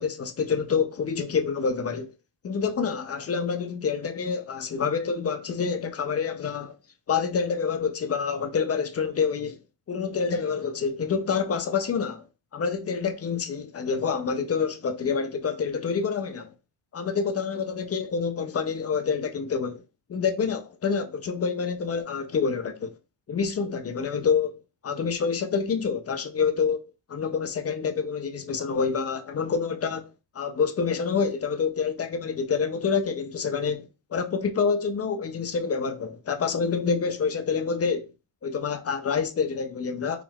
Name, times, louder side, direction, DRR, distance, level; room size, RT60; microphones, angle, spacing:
voice 1, 0.0-2.1 2.4-6.8 7.1-9.6 9.9-12.2 12.5-16.5 16.9-19.8 20.1-22.9 23.3-26.8 27.1-30.1 30.4-38.1 38.4-40.2, left 5 dB, 35° left, 0.4 m, -27 dB
4.7 x 3.6 x 2.3 m
cardioid pair, 140°, 48 cm